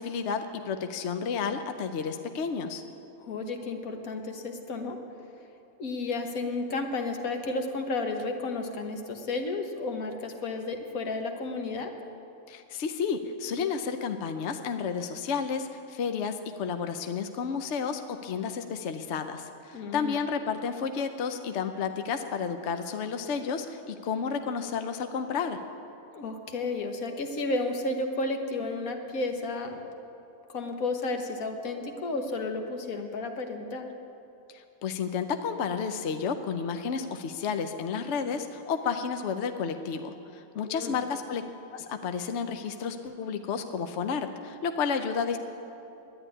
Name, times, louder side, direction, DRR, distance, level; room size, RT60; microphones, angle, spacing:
voice 1, 0.0-2.8 12.5-25.6 34.5-41.4 41.7-45.4, left 6 dB, 60° left, 7 dB, 0.9 m, -31 dB
voice 2, 3.2-5.0 5.8-11.9 19.7-20.2 26.1-30.0 30.5-33.9 40.7-40.9, left 3 dB, 80° left, 4 dB, 1.6 m, -32 dB
11.0 x 9.7 x 9.9 m, 2.8 s
omnidirectional pair, 1.4 m